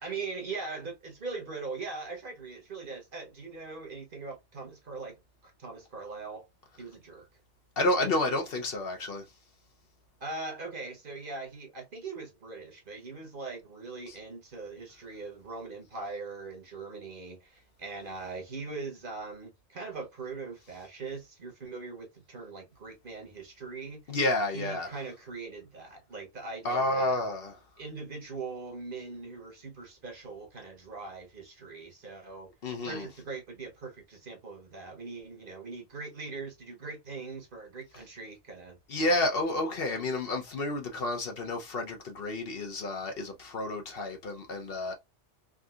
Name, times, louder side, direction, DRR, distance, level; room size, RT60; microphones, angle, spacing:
voice 1, 0.0-6.5 6.8-7.3 10.2-24.0 24.5-27.2 27.8-32.5 32.8-39.2, right 4 dB, 50° right, 1.1 m, -41 dB
voice 2, 7.8-9.2 24.1-24.9 26.6-27.5 32.6-33.1 38.9-44.9, left 2 dB, 55° left, 1.0 m, -30 dB
3.6 x 2.4 x 2.3 m
omnidirectional pair, 1.2 m